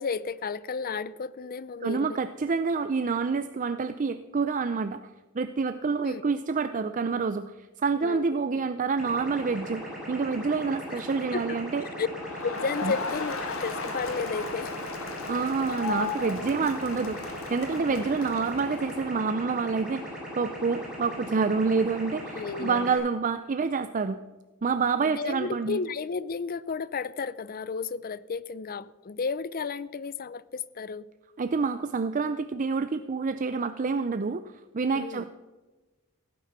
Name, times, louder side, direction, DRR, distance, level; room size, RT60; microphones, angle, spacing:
voice 1, 0.0-2.2 6.0-6.2 8.0-8.2 10.9-11.0 11.3-11.6 12.0-12.1 12.4-14.7 15.7-15.8 17.9-18.0 22.4-22.9 25.0-31.1 34.9-35.2, left 5 dB, 40° left, 18 dB, 0.5 m, -33 dB
voice 2, 1.8-5.0 5.3-11.8 12.8-12.9 15.3-20.0 20.4-24.2 24.6-25.8 31.4-35.2, right 4 dB, 35° right, 11 dB, 0.4 m, -28 dB
sound 1, 9.0-23.0, equal, 5° right, 5.5 m, -39 dB
Crowd, 12.1-19.2, left 4 dB, 65° left, 1.9 m, -36 dB
16.0 x 9.2 x 6.0 m, 1.2 s
head